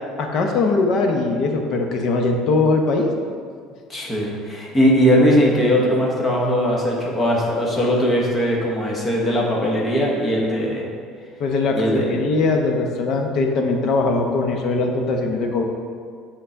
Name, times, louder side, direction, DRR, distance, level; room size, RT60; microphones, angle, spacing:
voice 1, 0.2-3.1 11.4-15.6, left 3 dB, 45° left, 3 dB, 0.8 m, -21 dB
voice 2, 3.9-10.9 11.7-12.1, equal, 15° left, -2 dB, 1.0 m, -19 dB
6.8 x 3.8 x 5.6 m, 2.1 s
cardioid pair, 170°, 0 cm